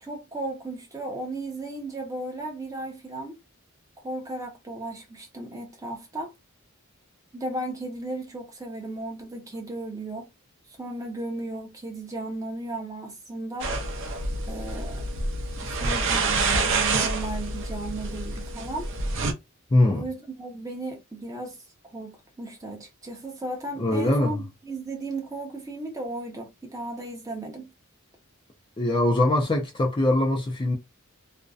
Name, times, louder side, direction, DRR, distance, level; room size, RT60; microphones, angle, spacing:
voice 1, 0.0-3.4 4.0-6.3 7.3-10.3 10.8-13.7 14.5-15.0 15.6-18.9 19.9-21.6 21.9-27.7, right 2 dB, 15° right, 0.6 m, -35 dB
sound 1, 13.6-19.3, right 3 dB, 60° right, 0.5 m, -27 dB
voice 2, 19.7-20.0 23.8-24.4 28.8-30.8, left 1 dB, 20° left, 0.4 m, -22 dB
2.5 x 2.1 x 2.3 m
head